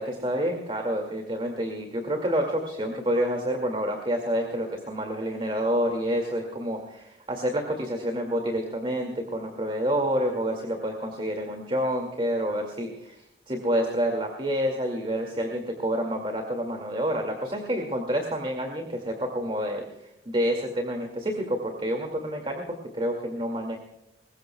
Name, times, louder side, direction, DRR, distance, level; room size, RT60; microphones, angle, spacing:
voice 1, 0.0-19.8 20.3-23.8, equal, 30° right, 3 dB, 2.2 m, -28 dB
22.5 x 20.0 x 2.3 m, 0.86 s
head